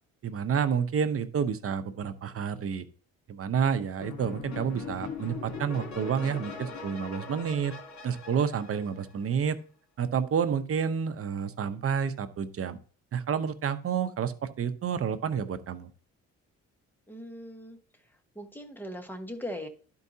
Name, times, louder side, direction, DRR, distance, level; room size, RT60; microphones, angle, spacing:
voice 1, 0.2-2.8 3.3-7.7 8.0-9.6 10.0-12.8 13.1-15.9, right 7 dB, 50° right, 11 dB, 0.8 m, -29 dB
sound 1, 4.0-9.4, left 5 dB, 70° left, 2.9 m, -41 dB
voice 2, 17.1-17.8 18.3-19.7, equal, 5° left, 5 dB, 1.3 m, -39 dB
12.0 x 4.6 x 2.7 m, 0.42 s
cardioid pair, 90°, 30 cm